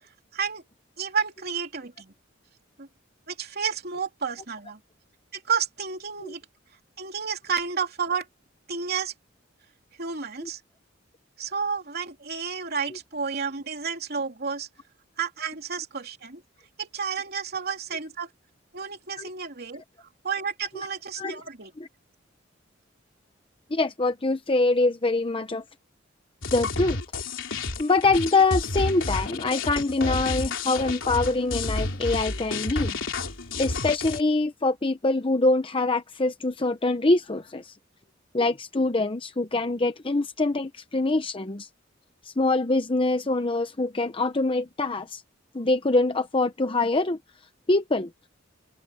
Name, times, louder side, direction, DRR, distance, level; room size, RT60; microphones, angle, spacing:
voice 1, 0.3-0.6 1.0-2.1 2.8-2.9 3.3-4.8 5.3-6.4 7.0-8.3 8.7-9.1 10.0-10.6 11.4-14.7 15.2-16.4 16.8-18.3 18.7-19.8 20.2-21.7, right 6 dB, 55° right, 3.4 m, -31 dB
voice 2, 23.7-25.6 26.5-27.0 27.8-33.0 33.6-37.8 38.3-41.7 42.2-45.2 45.5-47.2 47.7-48.1, left 2 dB, 30° left, 0.8 m, -24 dB
sound 1, 26.4-34.2, left 3 dB, 80° left, 3.4 m, -30 dB
head